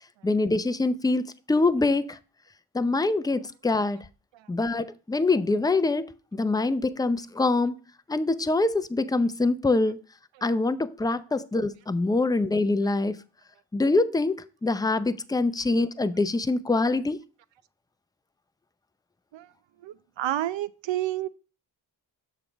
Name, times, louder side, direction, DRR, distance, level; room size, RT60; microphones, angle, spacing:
voice 1, 0.2-2.2 2.7-4.0 4.5-7.7 8.1-10.0 10.4-13.2 13.7-17.2, left 3 dB, 10° left, 0.5 m, -24 dB
voice 2, 19.8-21.3, right 14 dB, 70° right, 0.6 m, -30 dB
6.9 x 3.7 x 5.8 m
supercardioid pair, 45°, 46 cm